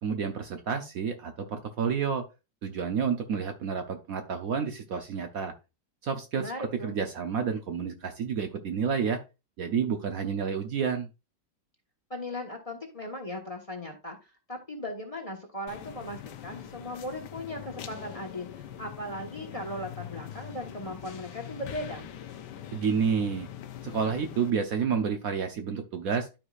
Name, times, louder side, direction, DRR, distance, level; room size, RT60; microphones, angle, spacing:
voice 1, 0.0-2.2 2.6-5.5 6.0-9.2 9.6-11.1 22.7-23.5 23.8-26.3, right 6 dB, 60° right, 6 dB, 1.1 m, -30 dB
voice 2, 6.3-7.0 12.1-18.5 18.8-22.1, left 1 dB, 25° left, 3 dB, 1.1 m, -38 dB
sound 1, 15.7-24.5, left 10 dB, 75° left, 1.3 m, -43 dB
12.5 x 4.8 x 2.4 m, 0.28 s
omnidirectional pair, 1.9 m